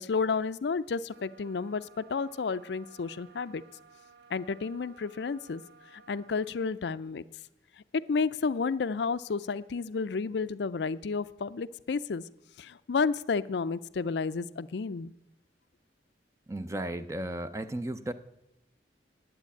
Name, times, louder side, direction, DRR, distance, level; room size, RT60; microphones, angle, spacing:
voice 1, 0.0-3.6 4.3-5.6 5.9-7.2 7.9-12.2 12.6-15.1, left 4 dB, 70° left, 16 dB, 0.5 m, -31 dB
sound 1, 1.1-6.6, right 5 dB, 85° right, 1.4 m, -57 dB
voice 2, 16.5-18.1, right 1 dB, 15° right, 11 dB, 0.5 m, -34 dB
10.5 x 9.2 x 8.4 m, 0.88 s
head